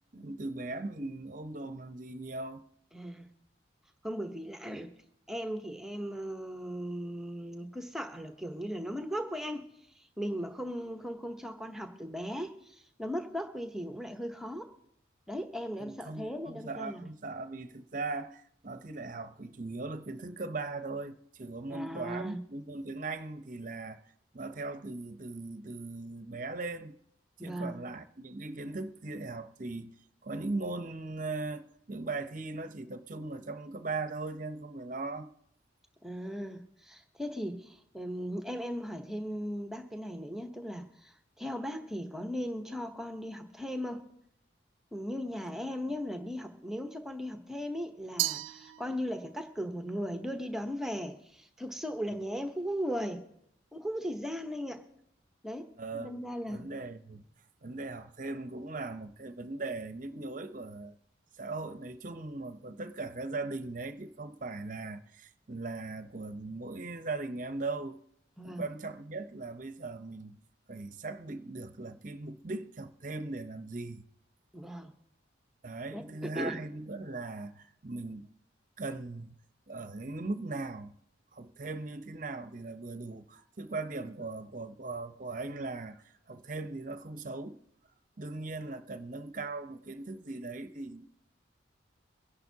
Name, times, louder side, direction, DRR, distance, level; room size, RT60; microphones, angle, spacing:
voice 1, 0.1-2.6 15.8-24.0 24.3-27.0 27.4-29.9 30.2-35.3 45.9-46.0 55.8-56.2 56.5-57.2 57.6-61.0 61.4-68.0 68.4-70.4 70.7-74.0 75.6-78.3 78.8-79.4 79.7-80.9 81.3-87.6 88.2-91.1, right 3 dB, 45° right, 0.7 m, -39 dB
voice 2, 2.9-3.3 4.0-4.9 5.3-9.7 10.0-14.7 15.3-17.0 21.7-22.4 27.4-27.8 36.0-44.1 44.9-53.2 53.7-54.8 55.4-56.6 68.4-68.7 74.5-74.9 75.9-76.6, equal, ahead, 0.9 m, -37 dB
Glass, 48.2-49.4, right 15 dB, 90° right, 0.4 m, -35 dB
23.5 x 10.5 x 2.8 m
head